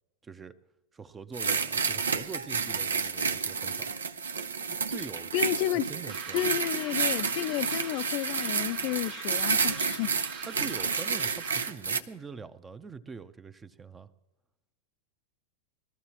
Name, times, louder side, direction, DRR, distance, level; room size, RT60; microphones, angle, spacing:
voice 1, 0.2-0.6 0.9-3.9 4.7-5.3 5.6-6.5 10.4-14.1, right 5 dB, 20° right, 0.7 m, -44 dB
sound 1, 1.3-12.0, right 5 dB, 85° right, 0.6 m, -30 dB
voice 2, 5.3-5.9 6.3-10.1, left 15 dB, 50° left, 0.4 m, -31 dB
sound 2, 6.1-11.9, right 6 dB, 50° right, 1.4 m, -43 dB
20.5 x 13.5 x 2.9 m
hypercardioid pair, 95°, 0 cm